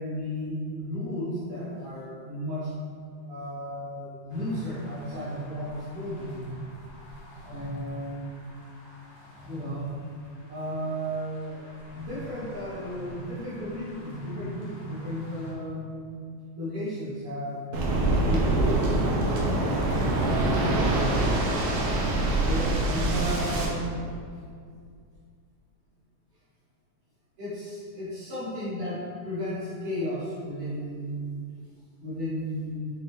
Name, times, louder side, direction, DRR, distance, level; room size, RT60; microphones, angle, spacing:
voice 1, 0.0-2.7 3.3-6.5 7.4-8.4 9.5-9.9 10.5-11.7 11.9-16.2 16.5-17.7 18.2-19.0 22.3-24.0 27.4-31.4 32.0-32.9, equal, 50° right, -11 dB, 2.2 m, -34 dB
sound 1, 4.3-15.5, right 1 dB, 75° left, 2.7 m, -43 dB
Waves surf, 17.7-23.7, right 2 dB, 75° right, 1.9 m, -24 dB
7.4 x 3.9 x 3.3 m, 2.2 s
omnidirectional pair, 3.9 m